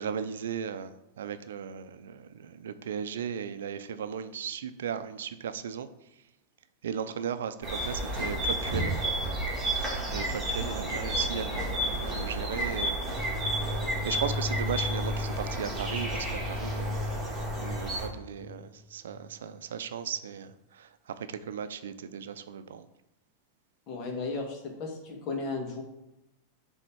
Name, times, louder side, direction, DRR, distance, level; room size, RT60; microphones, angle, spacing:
voice 1, 0.0-5.9 6.8-8.9 9.7-13.0 14.0-17.1 17.6-22.9, right 8 dB, 85° right, 11 dB, 0.5 m, -36 dB
sound 1, 7.6-18.1, right 1 dB, 5° right, 2.8 m, -31 dB
voice 2, 10.8-11.1 23.9-25.8, left 3 dB, 45° left, 1 dB, 2.0 m, -35 dB
sound 2, 13.2-19.5, left 3 dB, 15° left, 0.3 m, -36 dB
9.7 x 3.5 x 4.6 m, 0.91 s
hypercardioid pair, 120°, 0 cm